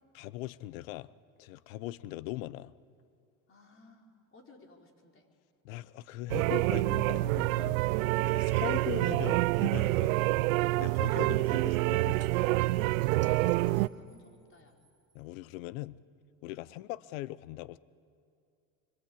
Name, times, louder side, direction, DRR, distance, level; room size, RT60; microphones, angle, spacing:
voice 1, 0.1-1.1 1.4-2.7 5.6-7.8 8.3-10.1 10.8-12.2 13.6-13.8 15.1-16.0 16.4-17.8, left 16 dB, 80° left, 19 dB, 0.8 m, -40 dB
voice 2, 3.5-5.3 8.6-9.0 11.1-12.1 12.7-14.8 16.6-16.9, left 2 dB, 30° left, 2 dB, 4.4 m, -58 dB
sound 1, 6.3-13.9, right 19 dB, 85° right, 0.6 m, -27 dB
sound 2, 12.2-12.3 13.0-15.2, right 6 dB, 40° right, 2.7 m, -54 dB
25.0 x 25.0 x 8.6 m, 2.5 s
supercardioid pair, 90°, 40 cm